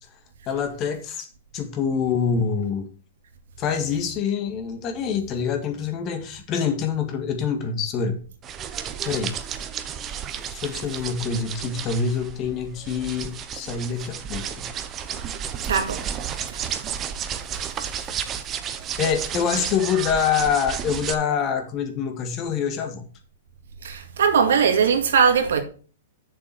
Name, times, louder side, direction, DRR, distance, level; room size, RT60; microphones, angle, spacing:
voice 1, 0.5-1.3 1.5-2.9 3.6-8.2 9.0-9.3 10.5-14.7 19.0-23.0, left 6 dB, 35° left, 1.7 m, -25 dB
sound 1, 8.4-21.1, right 8 dB, 25° right, 0.9 m, -32 dB
voice 2, 15.7-16.0 23.8-25.6, right 6 dB, 70° right, 2.1 m, -19 dB
8.1 x 6.8 x 4.6 m
hypercardioid pair, 120°, 0 cm